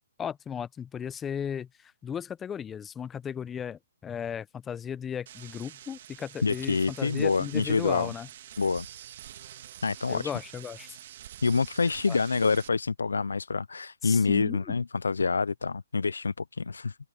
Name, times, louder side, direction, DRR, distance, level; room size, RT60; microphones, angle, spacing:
voice 1, 0.2-8.3 10.1-11.0 12.1-12.2 14.0-14.7, left 8 dB, 15° left, 0.7 m, -36 dB
sound 1, 5.3-12.7, right 11 dB, 50° right, 1.7 m, -47 dB
voice 2, 6.4-8.1 8.6-8.9 9.8-10.2 11.4-17.0, left 4 dB, 90° left, 0.4 m, -27 dB
open air
hypercardioid pair, 145°, 0 cm